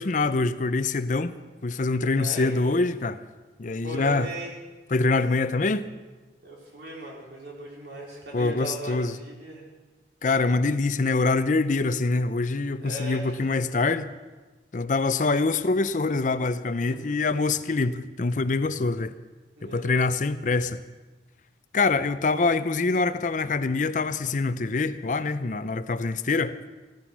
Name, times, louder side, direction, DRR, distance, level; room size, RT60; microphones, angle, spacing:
voice 1, 0.0-1.4 1.6-3.2 3.6-4.3 4.9-5.9 8.3-9.1 10.2-14.1 14.7-19.1 19.6-20.8 21.7-26.6, left 3 dB, 45° left, 0.5 m, -25 dB
voice 2, 2.1-2.6 3.8-4.5 6.4-9.6 12.8-13.5 16.9-17.2 19.6-20.1, right 1 dB, 65° right, 4.5 m, -38 dB
16.0 x 14.0 x 6.1 m
head